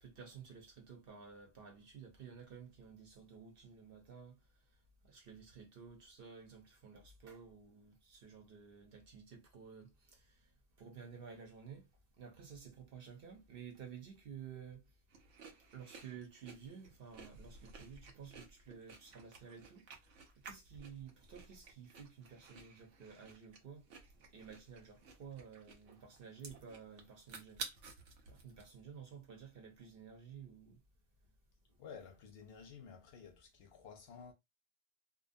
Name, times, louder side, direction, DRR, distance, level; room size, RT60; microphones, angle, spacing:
voice 1, 0.0-4.4 5.0-10.5 10.8-11.9 12.2-14.8 15.7-20.0 20.4-23.9 24.3-27.6 28.3-30.8, right 6 dB, 55° right, 0.9 m, -53 dB
sound 1, 15.1-28.7, right 4 dB, 85° right, 1.0 m, -54 dB
voice 2, 31.8-34.3, left 6 dB, 65° left, 0.7 m, -53 dB
2.5 x 2.1 x 2.5 m
omnidirectional pair, 1.2 m